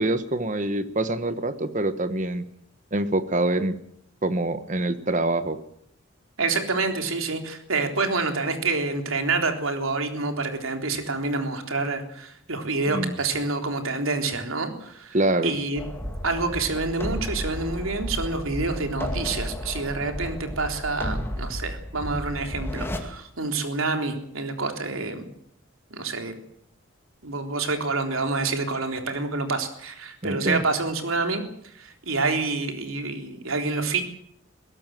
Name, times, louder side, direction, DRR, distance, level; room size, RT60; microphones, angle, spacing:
voice 1, 0.0-2.4 2.9-3.7 4.2-5.6 12.9-13.2 15.1-15.6 21.0-21.2 30.2-30.6, right 2 dB, 35° right, 12 dB, 1.3 m, -25 dB
voice 2, 6.4-15.2 15.4-15.8 16.2-25.3 25.9-26.3 27.2-31.4 31.7-34.0, right 3 dB, 80° right, 5 dB, 3.7 m, -27 dB
sound 1, 15.8-23.0, equal, 10° left, 2.3 m, -33 dB
22.0 x 17.5 x 7.6 m, 0.69 s
head